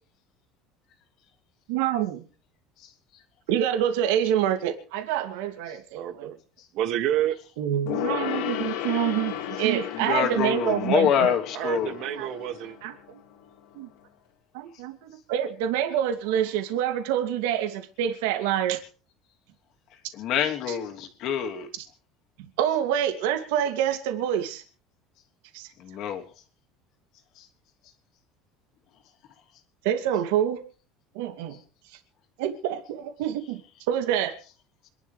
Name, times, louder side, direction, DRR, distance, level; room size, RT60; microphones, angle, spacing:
voice 1, 1.7-2.2 3.5-6.3 7.6-11.3 11.8-11.9 12.2-12.3 12.8-13.2 13.7-13.9 14.5-18.8 22.6-24.6 25.5-25.7 29.8-30.6 31.1-31.6 32.4-33.6 33.9-34.4, right 10 dB, 85° right, 7 dB, 2.5 m, -26 dB
voice 2, 5.9-6.4 6.7-7.4 11.5-12.8, right 11 dB, 50° right, 9 dB, 2.0 m, -28 dB
Gong, 7.9-13.8 14.0-14.1, left 11 dB, 75° left, 3.4 m, -34 dB
voice 3, 9.9-11.9 20.1-21.7 25.8-26.2 27.4-27.5, left 9 dB, 45° left, 4 dB, 3.0 m, -26 dB
26.5 x 12.0 x 3.4 m, 0.38 s
cardioid pair, 170°, 0 cm